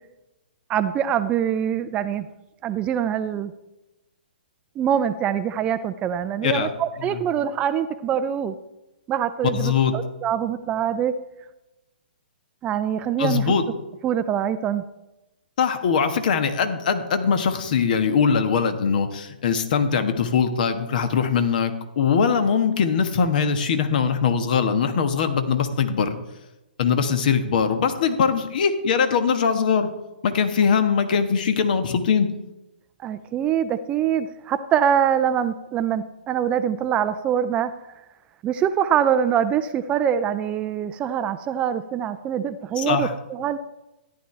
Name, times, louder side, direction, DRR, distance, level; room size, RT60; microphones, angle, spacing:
voice 1, 0.7-2.3 2.6-3.5 4.8-8.6 9.1-11.1 12.6-13.5 14.0-14.8 33.0-37.7 38.4-43.6, right 9 dB, 20° right, 12 dB, 0.4 m, -24 dB
voice 2, 9.5-9.9 13.2-13.6 15.6-26.2 26.8-29.9 30.2-32.3 42.8-43.1, left 6 dB, 50° left, 9 dB, 1.2 m, -21 dB
14.0 x 10.0 x 3.3 m, 0.99 s
figure-of-eight pair, 130°, 6 cm